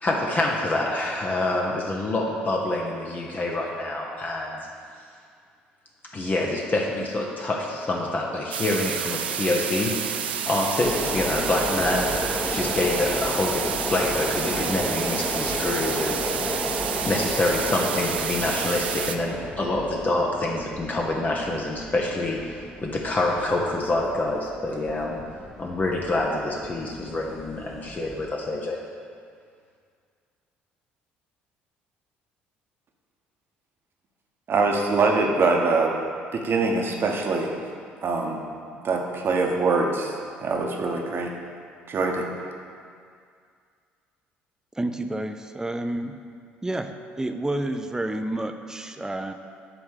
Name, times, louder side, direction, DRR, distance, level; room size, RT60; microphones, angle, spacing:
voice 1, 0.0-4.6 6.1-12.1 12.5-16.3 16.9-25.2 25.6-28.8, left 2 dB, 30° left, -1 dB, 0.9 m, -26 dB
sound 1, 8.5-19.2, right 8 dB, 85° right, 0.3 m, -30 dB
sound 2, 10.8-28.3, equal, 5° left, 1.0 m, -33 dB
voice 2, 34.5-35.9 36.3-37.5 38.0-38.4 38.8-40.1 40.4-41.3 41.9-42.3, right 3 dB, 45° right, 1 dB, 1.1 m, -23 dB
voice 3, 44.8-46.2 46.6-49.3, right 1 dB, 10° right, 7 dB, 0.6 m, -29 dB
8.8 x 3.4 x 6.5 m, 2.2 s
hypercardioid pair, 55°, 5 cm